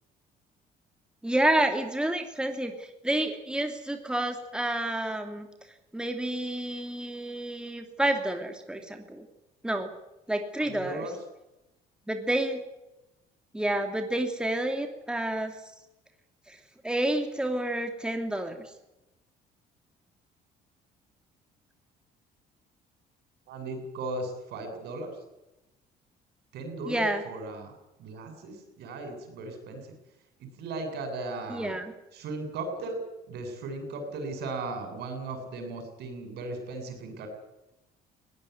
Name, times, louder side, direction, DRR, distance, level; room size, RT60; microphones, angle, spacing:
voice 1, 1.2-5.5 5.9-9.2 9.6-9.9 10.3-11.0 12.1-12.6 13.5-15.5 16.5-16.6 16.8-18.6 26.9-27.2 31.5-31.9, right 1 dB, 5° right, 5 dB, 2.8 m, -29 dB
voice 2, 10.6-11.2 23.5-25.1 26.5-29.8 30.4-31.8 32.1-33.0 33.3-37.3, right 2 dB, 75° right, 6 dB, 7.9 m, -37 dB
20.5 x 18.0 x 9.6 m, 0.96 s
cardioid pair, 110°, 17 cm